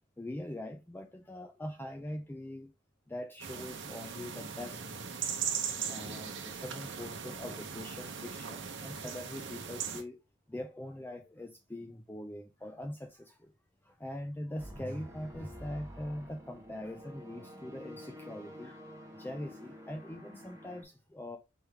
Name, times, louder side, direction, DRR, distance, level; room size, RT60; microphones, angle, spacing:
voice 1, 0.2-2.7 3.1-5.2 5.9-10.2 10.5-13.5 13.8-21.4, left 1 dB, 10° left, 0.4 m, -42 dB
sound 1, 3.4-10.0, right 7 dB, 60° right, 0.8 m, -39 dB
sound 2, 14.6-20.8, equal, 15° right, 1.0 m, -48 dB
4.4 x 3.4 x 3.5 m
head